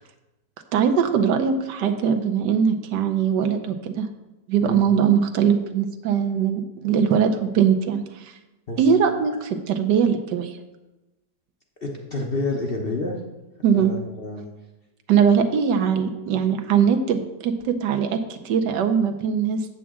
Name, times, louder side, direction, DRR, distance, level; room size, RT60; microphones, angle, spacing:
voice 1, 0.7-4.1 4.5-8.3 8.8-10.6 13.6-13.9 15.1-19.7, right 7 dB, 80° right, 7 dB, 1.3 m, -21 dB
voice 2, 11.8-13.2 13.7-14.5, left 2 dB, 45° left, 0 dB, 0.7 m, -29 dB
8.1 x 7.3 x 3.6 m, 1.0 s
omnidirectional pair, 1.9 m